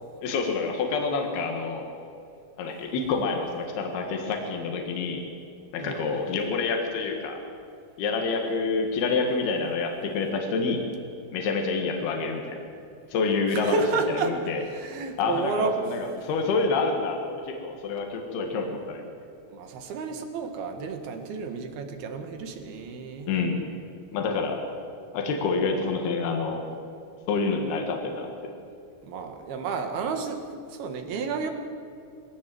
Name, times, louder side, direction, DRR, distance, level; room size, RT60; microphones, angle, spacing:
voice 1, 0.2-1.8 2.6-5.2 5.7-7.4 8.0-10.8 11.3-12.6 13.1-13.8 14.3-14.6 15.2-19.0 23.3-23.7 24.1-24.6 25.1-26.7 27.3-28.5, left 4 dB, 75° left, 3 dB, 3.7 m, -27 dB
voice 2, 13.5-14.4 14.6-15.8 19.5-23.3 29.0-30.4 30.7-31.5, right 4 dB, 70° right, 6 dB, 3.5 m, -31 dB
22.0 x 17.0 x 7.8 m, 2.6 s
omnidirectional pair, 4.7 m